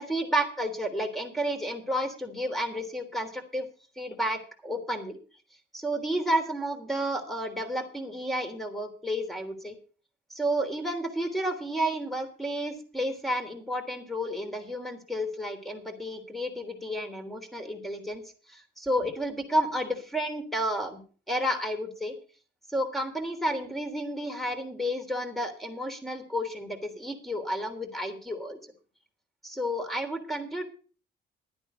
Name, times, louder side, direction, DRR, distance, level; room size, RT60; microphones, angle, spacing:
voice 1, 0.0-3.7 4.0-5.2 5.7-9.8 10.3-18.2 18.5-21.0 21.3-22.1 22.7-28.7 29.4-30.6, equal, ahead, 7 dB, 3.4 m, -31 dB
12.0 x 9.8 x 5.5 m, 0.38 s
cardioid pair, 90°, 20 cm